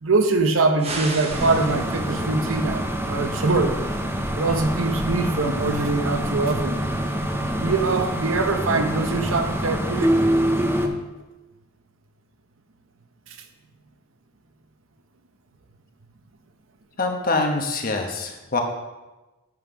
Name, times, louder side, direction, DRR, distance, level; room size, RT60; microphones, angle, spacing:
voice 1, 0.0-3.8 4.3-6.8 7.6-10.1 10.8-10.9, right 3 dB, 85° right, 7 dB, 0.8 m, -23 dB
sound 1, 0.8-2.4, right 2 dB, 30° right, 1.0 m, -33 dB
sound 2, 1.3-10.9, right 1 dB, 10° right, 0.6 m, -25 dB
voice 2, 17.0-18.6, left 3 dB, 45° left, 3 dB, 1.1 m, -24 dB
7.6 x 5.7 x 5.0 m, 1.1 s
head